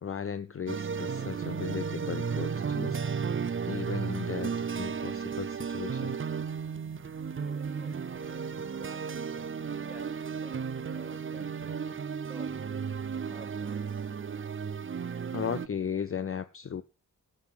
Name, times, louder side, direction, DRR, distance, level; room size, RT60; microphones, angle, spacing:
voice 1, 0.0-3.0 3.7-6.2 15.3-16.8, left 7 dB, 45° left, 0.5 m, -36 dB
sound 1, 0.7-15.7, right 6 dB, 40° right, 0.5 m, -34 dB
voice 2, 7.3-9.5 9.8-12.6 13.3-14.0, right 2 dB, 5° right, 5.6 m, -53 dB
17.0 x 7.7 x 3.6 m
wide cardioid pair, 115°, 32 cm